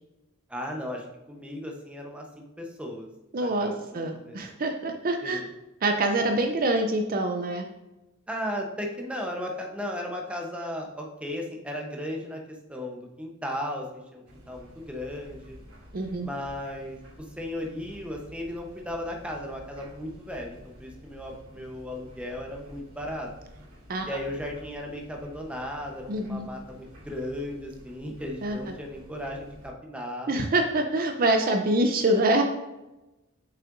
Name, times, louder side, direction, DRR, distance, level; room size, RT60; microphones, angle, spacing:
voice 1, 0.5-3.1 3.4-4.4 5.2-5.5 8.3-12.4 12.7-15.6 16.2-17.0 17.4-23.3 24.0-30.4, left 1 dB, 5° right, 1 dB, 0.8 m, -36 dB
voice 2, 3.3-5.4 5.8-7.7 15.9-16.3 23.9-24.2 26.1-26.5 28.4-28.6 30.3-32.4, right 2 dB, 45° right, 5 dB, 0.5 m, -25 dB
sound 1, 14.2-29.7, equal, 80° right, 2.2 m, -50 dB
7.2 x 5.7 x 2.6 m, 1.0 s
head